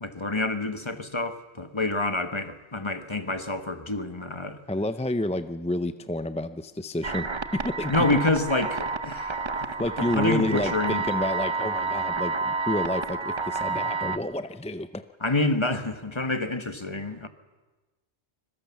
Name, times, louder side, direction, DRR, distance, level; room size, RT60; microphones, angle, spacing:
voice 1, 0.0-4.6 7.9-9.7 10.0-11.0 15.2-17.3, left 2 dB, 25° left, 1.4 m, -28 dB
voice 2, 4.7-8.1 9.8-15.0, left 1 dB, 10° left, 0.4 m, -29 dB
sound 1, 7.0-14.2, right 3 dB, 30° right, 0.8 m, -30 dB
25.5 x 22.5 x 7.1 m
omnidirectional pair, 1.2 m